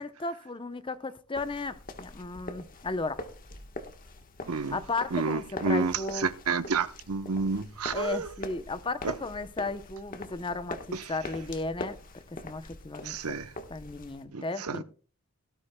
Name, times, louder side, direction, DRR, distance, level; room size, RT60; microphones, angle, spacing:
voice 1, 0.0-3.2 4.7-6.3 7.9-13.2 13.7-14.8, left 3 dB, 25° left, 0.7 m, -35 dB
sound 1, 1.4-14.2, left 2 dB, 40° left, 1.3 m, -44 dB
voice 2, 4.5-4.8 5.1-8.3 9.0-9.1 10.9-11.0 13.0-13.5 14.3-14.8, right 4 dB, 80° right, 0.8 m, -30 dB
17.5 x 13.0 x 2.2 m
head